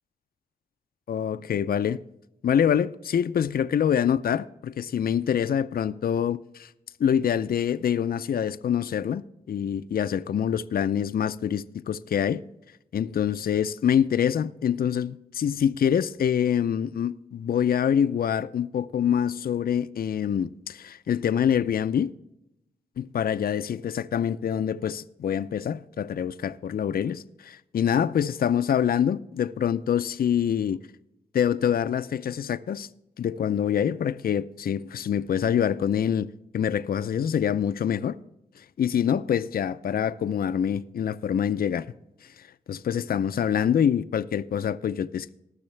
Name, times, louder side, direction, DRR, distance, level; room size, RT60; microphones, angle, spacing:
voice 1, 1.1-2.0 2.4-6.7 7.0-12.4 12.9-22.1 23.0-30.8 31.3-32.9 33.2-36.3 36.5-38.2 38.6-41.9 42.4-45.3, left 8 dB, 65° left, 0.4 m, -25 dB
19.0 x 6.5 x 3.3 m
cardioid pair, 70°, 17 cm